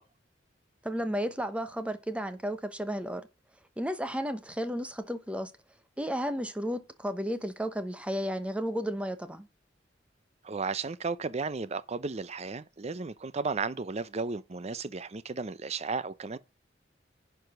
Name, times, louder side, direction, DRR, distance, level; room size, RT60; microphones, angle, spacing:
voice 1, 0.8-3.3 3.8-5.5 6.0-9.5, equal, 5° right, 1.0 m, -33 dB
voice 2, 10.4-16.4, right 4 dB, 35° right, 0.6 m, -34 dB
10.5 x 5.0 x 5.1 m
head